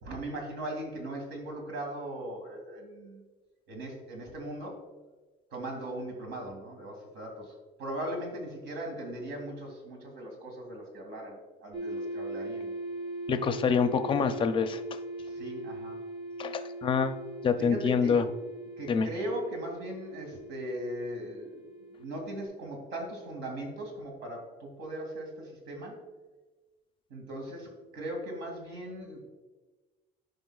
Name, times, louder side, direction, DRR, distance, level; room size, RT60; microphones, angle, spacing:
voice 1, 0.0-3.2 3.7-4.9 5.5-12.7 15.2-16.0 17.6-18.2 18.8-21.6 22.0-26.0 27.1-29.3, right 1 dB, 85° right, 2 dB, 2.4 m, -39 dB
sound 1, 11.7-22.4, right 1 dB, 35° right, 1.7 m, -40 dB
voice 2, 13.3-14.8 16.4-17.2 17.4-18.2 18.9-19.1, left 6 dB, 30° left, 9 dB, 0.5 m, -26 dB
14.0 x 5.2 x 2.4 m, 1.2 s
cardioid pair, 170°, 17 cm